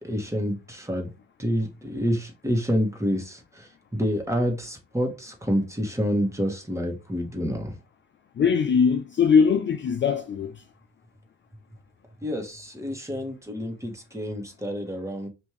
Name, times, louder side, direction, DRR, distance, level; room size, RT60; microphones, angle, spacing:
voice 1, 0.0-1.1 1.4-7.7 12.2-15.3, equal, 10° right, 1.4 m, -28 dB
voice 2, 8.4-10.5, left 6 dB, 40° left, 0.4 m, -21 dB
5.3 x 2.7 x 3.2 m
cardioid pair, 90°, 30 cm